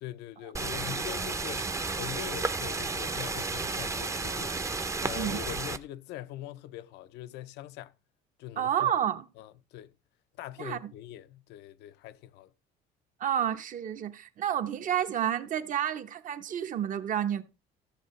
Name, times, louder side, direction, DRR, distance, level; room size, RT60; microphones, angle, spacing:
voice 1, 0.0-4.7 5.0-7.9 8.4-8.9 9.4-9.9 10.4-12.5, left 13 dB, 85° left, 0.6 m, -42 dB
sound 1, 0.5-5.8, right 3 dB, 20° right, 0.6 m, -32 dB
voice 2, 8.6-9.3 10.6-10.9 13.2-17.4, right 10 dB, 50° right, 0.9 m, -30 dB
14.0 x 7.4 x 3.1 m
cardioid pair, 110°, 17 cm